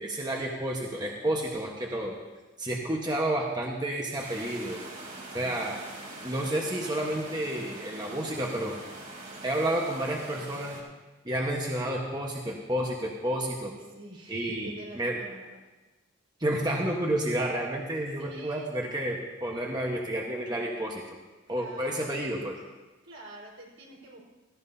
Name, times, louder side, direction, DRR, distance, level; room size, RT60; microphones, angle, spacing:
voice 1, 0.0-2.1 2.6-4.8 5.3-5.8 6.2-8.8 9.4-10.8 11.2-13.7 14.3-15.2 16.4-21.0 21.5-22.5, right 1 dB, 20° right, -1 dB, 1.2 m, -30 dB
sound 1, 4.2-10.8, right 2 dB, 45° right, 3.5 m, -43 dB
voice 2, 5.2-5.7 13.9-15.6 18.2-18.7 21.5-22.2 23.0-24.3, right 2 dB, 80° right, -3 dB, 4.7 m, -46 dB
17.0 x 16.0 x 2.8 m, 1.2 s
head